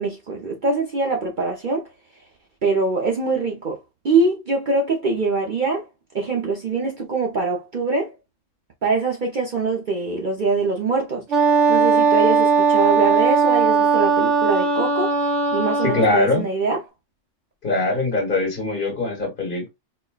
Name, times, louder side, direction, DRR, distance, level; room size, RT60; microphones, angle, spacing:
voice 1, 0.0-1.9 2.6-3.8 4.0-5.9 6.1-8.1 8.8-11.2 11.7-15.2 15.5-16.8, right 3 dB, 50° right, 0.7 m, -23 dB
Wind instrument woodwind instrument, 11.3-16.2, right 5 dB, 75° right, 1.1 m, -18 dB
voice 2, 15.8-16.4 17.6-19.7, left 2 dB, 45° left, 1.5 m, -22 dB
4.3 x 2.1 x 2.3 m
omnidirectional pair, 1.3 m